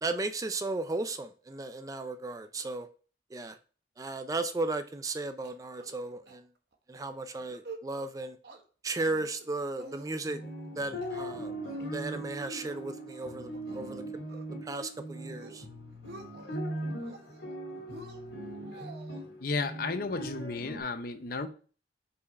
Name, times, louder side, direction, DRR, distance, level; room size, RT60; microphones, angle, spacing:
voice 1, 0.0-2.9 3.3-3.6 4.0-6.4 6.9-8.4 8.8-10.4 10.8-11.5 11.9-14.0 14.6-15.6, right 2 dB, 20° right, 0.4 m, -35 dB
sound 1, 5.4-6.0 6.3-6.4 6.7-7.0 7.4-7.8 8.2-8.6 9.0-9.5 9.8-10.5 10.8-11.3 11.6-12.0 12.4-14.0 14.3-14.9 15.3-15.7 15.9-16.6 17.0-17.5 17.9-19.2, right 2 dB, 65° right, 0.9 m, -49 dB
sound 2, 10.2-20.8, right 1 dB, 80° left, 2.0 m, -40 dB
voice 2, 19.4-21.5, left 3 dB, 55° left, 0.6 m, -33 dB
5.2 x 4.8 x 4.1 m
head